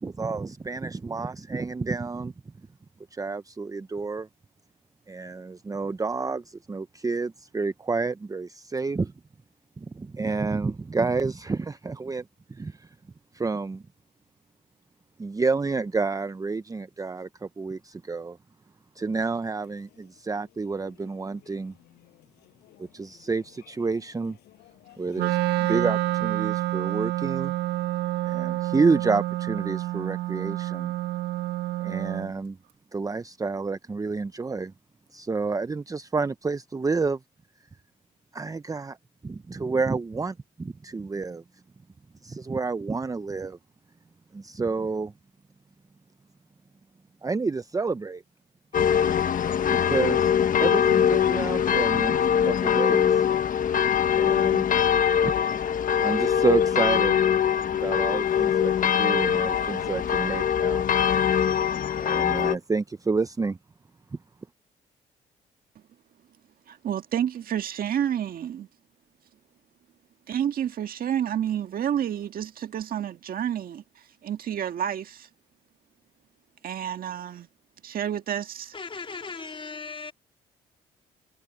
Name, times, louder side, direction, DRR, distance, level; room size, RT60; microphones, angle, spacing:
voice 1, 0.0-2.3 3.1-4.3 5.1-9.1 9.8-12.9 13.3-13.8 15.2-18.4 19.0-21.7 22.8-24.4 25.0-27.5 28.2-30.9 31.8-32.6 32.9-34.7 35.1-37.2 38.3-39.0 39.2-41.4 42.2-43.6 44.3-45.1 47.2-48.2 49.6-50.3 50.6-53.2 54.2-54.7 55.2-55.3 56.0-57.2 57.7-60.9 62.0-63.6, right 4 dB, 20° right, 0.7 m, -29 dB
sound 1, 19.0-26.3, left 16 dB, 80° left, 7.8 m, -57 dB
Wind instrument woodwind instrument, 25.1-32.3, right 16 dB, 85° right, 1.8 m, -28 dB
sound 2, 48.7-62.5, left 8 dB, 55° left, 1.3 m, -22 dB
voice 2, 66.7-68.7 70.3-75.3 76.6-77.5 77.8-78.8, right 9 dB, 60° right, 1.7 m, -29 dB
voice 3, 78.7-80.1, left 4 dB, 30° left, 3.8 m, -37 dB
supercardioid pair, 65°, 17 cm